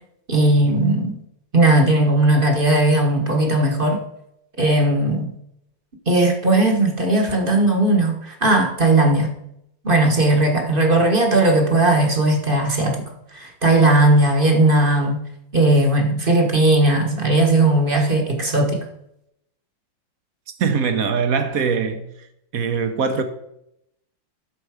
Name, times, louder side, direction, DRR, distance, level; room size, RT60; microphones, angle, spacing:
voice 1, 0.3-1.2 1.5-4.0 4.6-5.3 6.1-9.4 9.8-13.0 13.3-15.2 15.5-18.8, right 2 dB, 30° right, 1.2 m, -17 dB
voice 2, 20.6-22.1 22.5-23.2, right 5 dB, 55° right, 1.1 m, -21 dB
10.5 x 6.8 x 4.8 m
omnidirectional pair, 2.1 m